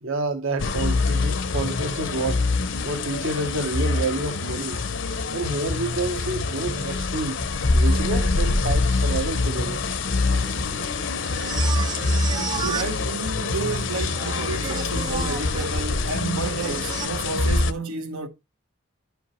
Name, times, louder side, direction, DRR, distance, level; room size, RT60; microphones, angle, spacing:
voice 1, 0.0-2.4 2.8-4.8 5.3-7.4 7.7-9.8, right 2 dB, 70° right, 1.2 m, -29 dB
sound 1, 0.6-17.7, left 3 dB, 60° left, 0.7 m, -25 dB
sound 2, 10.1-17.1, right 5 dB, 20° right, 0.4 m, -34 dB
voice 2, 11.9-18.3, right 4 dB, 90° right, 1.2 m, -31 dB
11.0 x 4.9 x 3.1 m
head